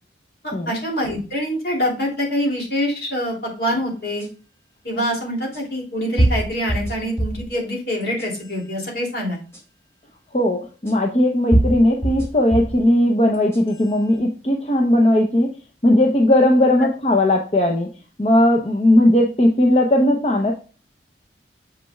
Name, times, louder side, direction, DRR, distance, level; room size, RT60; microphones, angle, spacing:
voice 1, 0.4-4.3 4.8-9.4, equal, 60° left, -2 dB, 2.9 m, -25 dB
sound 1, 4.2-4.3 5.5-5.6 6.2-7.5 8.0-8.6 9.5-9.6 10.9-11.0 11.5-12.8 13.3-13.9, right 1 dB, 15° left, 2.0 m, -22 dB
voice 2, 10.3-15.5 15.8-17.9 18.2-20.5, left 1 dB, 35° left, 1 dB, 0.8 m, -17 dB
6.7 x 6.2 x 2.3 m, 0.36 s
head